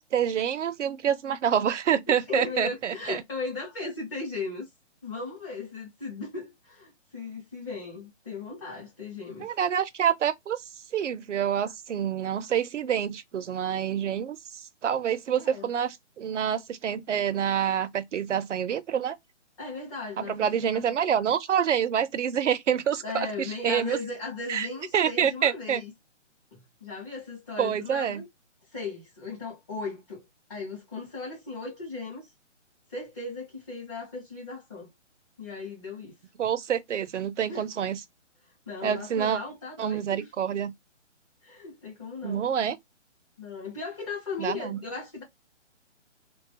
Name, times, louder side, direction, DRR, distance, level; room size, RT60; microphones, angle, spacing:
voice 1, 0.0-3.2 9.4-10.6 10.9-19.2 20.2-24.0 24.5-24.7 24.9-25.8 27.6-28.2 36.4-38.0 38.8-39.4 39.8-40.7 42.2-42.8 44.4-44.8, right 8 dB, 75° right, 0.6 m, -27 dB
voice 2, 2.3-4.7 5.0-9.5 15.4-15.7 19.6-21.3 23.0-25.9 26.5-28.3 28.7-32.3 32.9-34.9 35.4-36.2 37.5-37.7 38.7-40.3 41.4-42.4 43.4-45.2, left 3 dB, 20° left, 0.6 m, -37 dB
2.3 x 2.3 x 2.7 m
hypercardioid pair, 155°, 37 cm